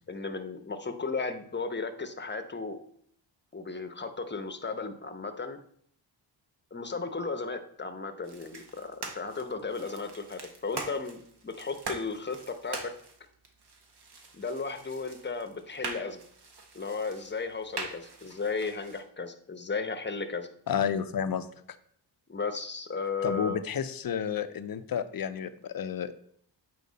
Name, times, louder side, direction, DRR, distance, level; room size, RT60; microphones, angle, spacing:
voice 1, 0.1-2.8 3.5-5.6 6.7-12.9 14.3-16.2 16.7-20.5 22.3-23.6, left 4 dB, 25° left, 8 dB, 0.9 m, -35 dB
sound 1, 8.2-19.0, right 3 dB, 60° right, 1.5 m, -43 dB
voice 2, 20.7-21.5 23.2-26.1, left 8 dB, 50° left, 11 dB, 0.7 m, -31 dB
8.5 x 4.7 x 4.1 m, 0.64 s
cardioid pair, 80°, 45 cm